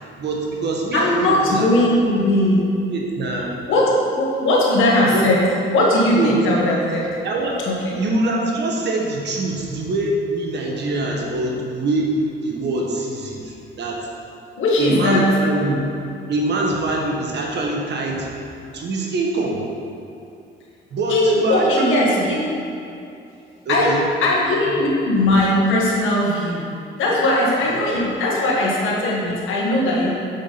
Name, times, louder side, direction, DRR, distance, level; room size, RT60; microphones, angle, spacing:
voice 1, 0.2-1.7 2.9-3.5 5.0-5.3 6.1-6.4 7.2-7.6 7.9-14.0 14.8-15.8 16.3-18.3 18.7-19.7 20.9-22.3 23.6-24.0, right 2 dB, 60° right, -1 dB, 1.3 m, -24 dB
voice 2, 0.9-2.7 3.7-5.4 5.7-7.1 7.7-8.0 14.6-15.3 21.1-22.5 23.7-24.0 24.2-26.6 27.0-30.1, left 1 dB, 85° left, -4 dB, 1.7 m, -19 dB
7.1 x 5.8 x 4.2 m, 2.6 s
cardioid pair, 90°, 20 cm